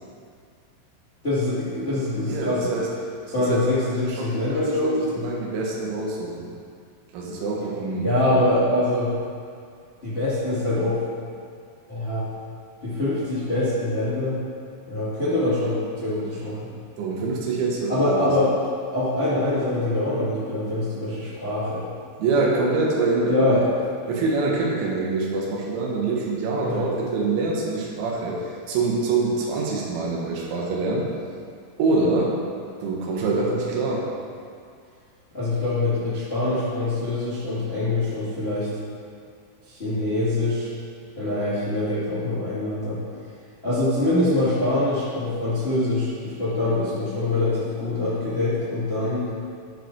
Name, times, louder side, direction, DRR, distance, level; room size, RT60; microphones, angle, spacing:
voice 1, 1.2-2.7 3.3-5.3 8.0-9.1 10.0-11.0 11.9-12.3 12.8-14.4 14.9-16.7 17.9-18.6 18.9-21.8 23.3-23.7 26.6-26.8 35.3-38.7 39.7-40.7 41.1-43.0 43.6-49.3, left 2 dB, 65° left, -12 dB, 0.5 m, -24 dB
voice 2, 2.3-2.9 3.5-3.6 4.0-5.0 5.2-6.5 7.1-8.1 8.3-8.5 17.0-18.3 22.2-23.7 24.1-31.1 31.8-32.4 32.8-34.1, right 3 dB, 80° right, -3 dB, 3.7 m, -25 dB
12.0 x 4.9 x 4.6 m, 2.3 s
omnidirectional pair, 5.4 m